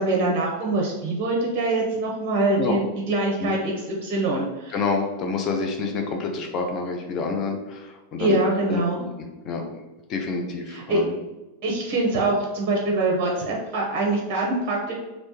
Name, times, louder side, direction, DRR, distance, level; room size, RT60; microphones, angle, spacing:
voice 1, 0.0-4.7 8.2-9.0 10.7-11.0 11.6-14.9, right 2 dB, 35° right, -1 dB, 0.6 m, -24 dB
voice 2, 4.7-8.4 8.7-9.1 9.4-9.6 10.1-11.1, left 4 dB, 35° left, 3 dB, 0.5 m, -27 dB
3.2 x 2.6 x 3.0 m, 1.1 s
figure-of-eight pair, 90°, 0 cm